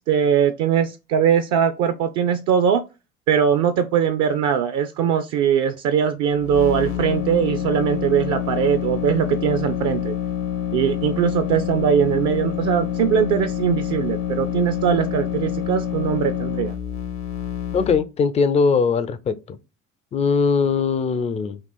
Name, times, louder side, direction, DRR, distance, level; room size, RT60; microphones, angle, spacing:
voice 1, 0.1-2.8 3.3-10.2 10.7-16.7, right 8 dB, 45° right, 0.4 m, -21 dB
sound 1, 6.3-18.0, left 10 dB, 70° left, 0.8 m, -27 dB
voice 2, 17.7-19.6 20.1-21.6, left 5 dB, 20° left, 0.3 m, -20 dB
3.0 x 2.9 x 4.1 m
figure-of-eight pair, 60°, 37 cm